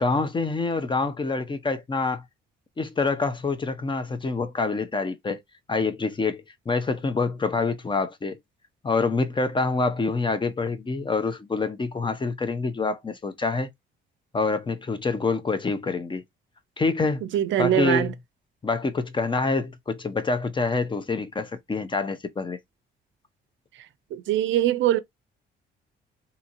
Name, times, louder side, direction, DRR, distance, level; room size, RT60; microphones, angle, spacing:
voice 1, 0.0-2.2 2.8-5.4 5.7-8.4 8.8-13.7 14.3-16.2 16.8-17.2 17.6-18.1 18.6-22.6, left 3 dB, 25° left, 0.5 m, -26 dB
voice 2, 17.3-18.1 24.1-25.0, right 12 dB, 75° right, 0.4 m, -22 dB
2.8 x 2.7 x 2.5 m
cardioid pair, 90°, 20 cm